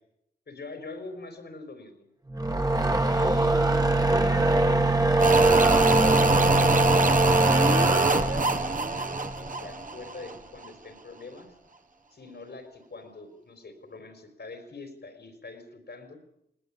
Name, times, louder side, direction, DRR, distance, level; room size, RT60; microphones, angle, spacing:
voice 1, 0.5-2.0 3.1-3.8 4.0-6.2 6.6-11.5 12.1-16.2, left 3 dB, 80° left, 6 dB, 4.3 m, -44 dB
sound 1, 2.3-9.7, right 1 dB, 20° right, 1.5 m, -23 dB
sound 2, 5.2-10.4 10.6-10.7, right 3 dB, 50° right, 1.4 m, -24 dB
20.0 x 19.5 x 8.6 m, 0.81 s
wide cardioid pair, 55°, 17 cm